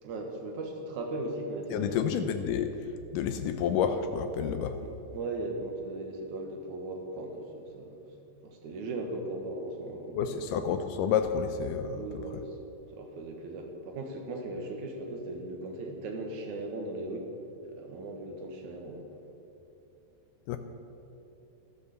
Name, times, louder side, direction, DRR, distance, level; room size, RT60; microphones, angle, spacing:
voice 1, 0.0-2.0 4.8-8.0 8.4-10.5 11.9-12.6 12.9-17.3 17.7-19.1, right 2 dB, 60° right, 2 dB, 2.6 m, -38 dB
voice 2, 1.7-2.8 3.1-4.8 10.2-12.1 20.5-20.6, left 7 dB, 85° left, 8 dB, 1.9 m, -29 dB
13.0 x 12.5 x 6.9 m, 2.9 s
omnidirectional pair, 4.6 m